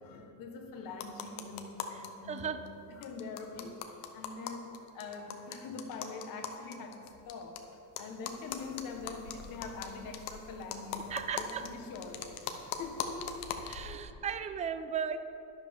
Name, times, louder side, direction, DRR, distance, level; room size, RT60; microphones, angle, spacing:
voice 1, 0.0-7.6 8.0-12.3 12.6-13.5 14.0-14.2, left 4 dB, 60° left, 4 dB, 1.3 m, -44 dB
sound 1, 0.9-2.1 2.4-2.5 2.7-2.8 3.0-7.6 8.0-13.9, left 8 dB, 85° left, 1.0 m, -41 dB
voice 2, 2.3-2.6 11.1-11.7 13.7-15.2, right 7 dB, 20° right, 10 dB, 0.4 m, -36 dB
12.0 x 10.5 x 3.6 m, 2.8 s
cardioid pair, 135°, 38 cm